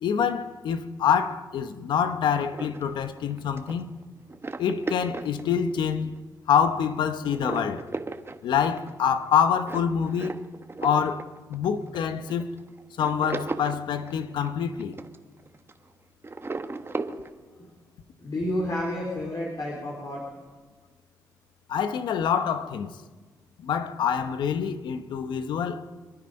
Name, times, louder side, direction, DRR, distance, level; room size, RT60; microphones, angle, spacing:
voice 1, 0.0-3.9 4.6-7.9 8.4-10.4 10.8-12.5 13.0-15.0 21.7-23.0 23.6-25.8, left 7 dB, 85° left, 0.9 m, -26 dB
sound 1, 2.4-6.2 6.6-6.9 7.2-15.9 16.2-17.3, right 3 dB, 30° right, 1.3 m, -36 dB
voice 2, 18.2-20.2, left 1 dB, 55° left, 3.8 m, -30 dB
27.0 x 10.0 x 5.3 m
supercardioid pair, 55°, 8 cm